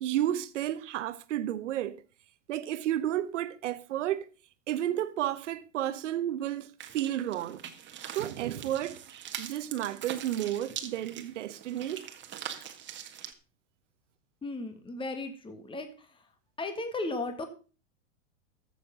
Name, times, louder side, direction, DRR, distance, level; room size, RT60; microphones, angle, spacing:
voice 1, 0.0-2.0 2.5-4.2 4.7-6.7 6.9-7.6 8.1-9.0 9.4-12.1, right 12 dB, 70° right, 1.2 m, -32 dB
sound 1, 6.8-13.3, right 10 dB, 30° right, 1.7 m, -43 dB
voice 2, 14.4-16.2 16.6-17.5, left 2 dB, 15° left, 1.9 m, -36 dB
14.0 x 7.0 x 5.3 m
hypercardioid pair, 105°, 37 cm